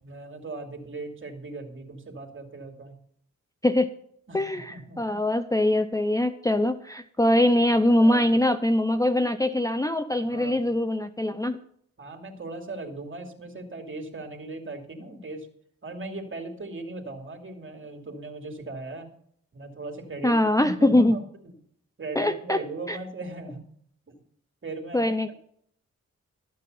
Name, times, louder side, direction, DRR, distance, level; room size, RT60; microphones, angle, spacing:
voice 1, 0.0-3.0 4.3-5.2 7.3-7.4 7.7-8.4 10.2-10.7 12.0-15.5 15.8-19.1 19.5-21.2 22.0-23.6 24.1-24.2 24.6-25.3, right 2 dB, 40° right, 4 dB, 2.6 m, -38 dB
voice 2, 4.3-11.6 20.2-21.2 22.2-22.6 22.9-23.0 24.9-25.3, left 1 dB, 10° left, 11 dB, 0.6 m, -23 dB
13.0 x 8.4 x 5.5 m, 0.66 s
cardioid pair, 65°, 30 cm